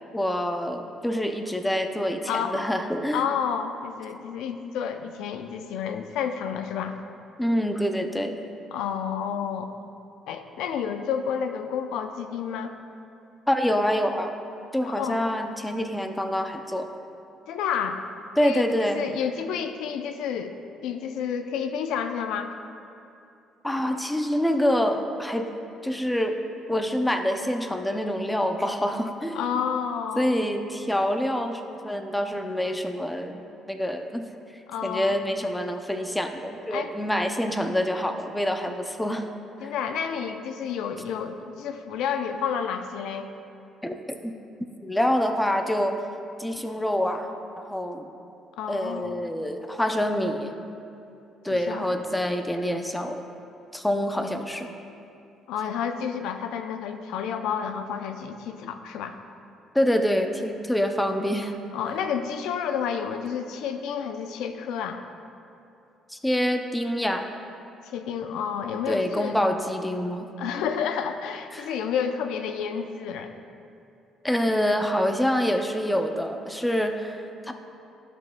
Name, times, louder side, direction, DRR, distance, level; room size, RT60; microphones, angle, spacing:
voice 1, 0.1-3.3 7.4-8.4 13.5-14.3 14.7-16.9 18.4-19.0 23.6-25.6 25.8-26.4 26.7-29.5 30.2-34.3 34.8-39.3 39.6-39.7 43.8-44.3 44.8-45.9 46.4-47.3 47.6-48.1 48.7-50.5 51.4-53.2 53.7-54.7 59.7-61.5 66.1-67.3 68.9-70.3 71.5-71.7 74.2-77.5, equal, 5° left, 5 dB, 0.4 m, -26 dB
voice 2, 2.3-2.7 3.1-7.0 8.7-9.7 10.3-12.7 14.8-15.2 17.5-18.0 18.4-20.6 20.8-22.5 29.3-30.4 34.7-35.2 36.7-36.9 39.6-43.3 48.6-49.2 51.5-52.0 55.5-59.2 61.7-65.0 67.8-69.4 70.4-73.3, left 7 dB, 85° left, 7 dB, 0.5 m, -30 dB
13.5 x 6.2 x 2.2 m, 2.7 s
cardioid pair, 150°, 0 cm